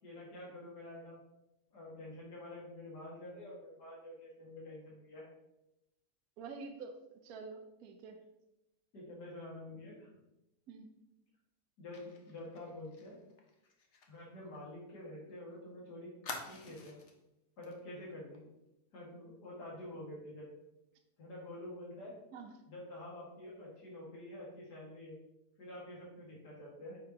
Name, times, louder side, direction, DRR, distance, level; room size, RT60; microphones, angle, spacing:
voice 1, 0.0-1.2 1.7-5.2 8.9-10.1 11.8-13.2 14.1-16.2 16.4-17.0 17.6-18.5 18.9-20.6 21.2-22.2 22.7-25.2 25.6-27.0, left 1 dB, 90° left, -6 dB, 2.6 m, -48 dB
voice 2, 6.4-7.0 7.2-8.2 10.7-10.9 22.3-22.5, right 4 dB, 70° right, 5 dB, 1.1 m, -47 dB
Fire, 11.9-15.4 15.6-15.7 16.2-17.2 17.6-17.8 18.1-18.4, left 4 dB, 50° left, 1.2 m, -49 dB
9.2 x 5.3 x 2.9 m, 0.92 s
omnidirectional pair, 1.7 m